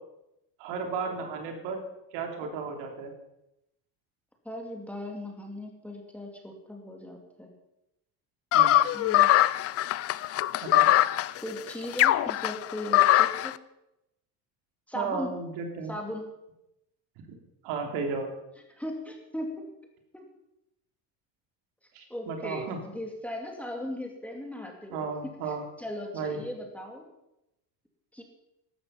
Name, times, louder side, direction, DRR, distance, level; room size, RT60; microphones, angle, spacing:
voice 1, 0.6-1.8 2.1-3.1 8.5-8.7 10.6-10.9 14.9-15.9 17.6-18.3 21.9-22.8 24.9-25.6 26.1-26.4, right 4 dB, 70° right, 3 dB, 3.4 m, -34 dB
voice 2, 4.4-7.5 8.9-9.3 11.4-13.5 14.9-15.4 15.9-16.3 18.7-19.7 20.1-20.3 22.1-27.1 28.1-28.2, left 1 dB, 5° left, 2 dB, 2.4 m, -38 dB
sound 1, 8.5-13.5, left 14 dB, 35° left, 0.4 m, -22 dB
15.5 x 12.5 x 5.8 m, 0.88 s
cardioid pair, 140°, 43 cm